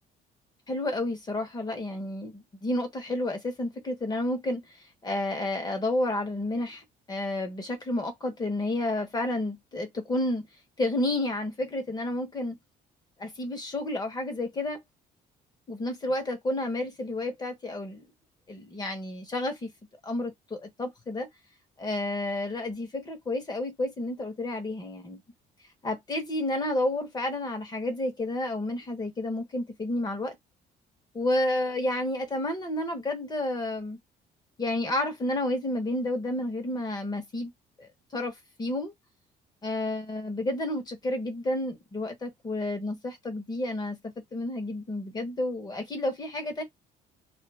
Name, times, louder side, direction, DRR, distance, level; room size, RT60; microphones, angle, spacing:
voice 1, 0.7-4.8 5.0-10.5 10.8-12.6 13.2-14.8 15.7-18.1 18.5-19.7 20.0-21.3 21.8-25.2 25.8-30.3 31.1-34.0 34.6-37.5 37.8-38.9 39.6-46.6, left 1 dB, 25° left, 1.2 m, -31 dB
2.5 x 2.1 x 3.3 m
cardioid pair, 110°, 17 cm